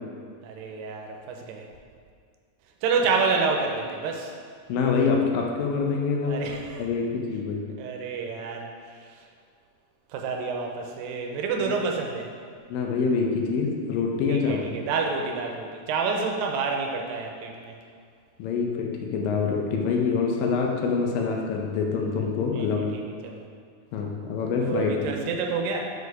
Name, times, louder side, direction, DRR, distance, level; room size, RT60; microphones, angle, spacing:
voice 1, 0.4-1.7 2.8-4.3 6.3-6.9 7.8-8.7 8.9-9.2 10.1-12.3 14.3-17.8 22.5-23.5 24.6-25.9, right 4 dB, 80° right, 2 dB, 2.3 m, -29 dB
voice 2, 4.7-6.5 6.8-7.7 11.6-11.7 12.7-14.6 18.4-22.9 23.9-24.9, left 5 dB, 80° left, 1 dB, 2.3 m, -25 dB
6.5 x 4.7 x 4.7 m, 2.2 s
omnidirectional pair, 4.1 m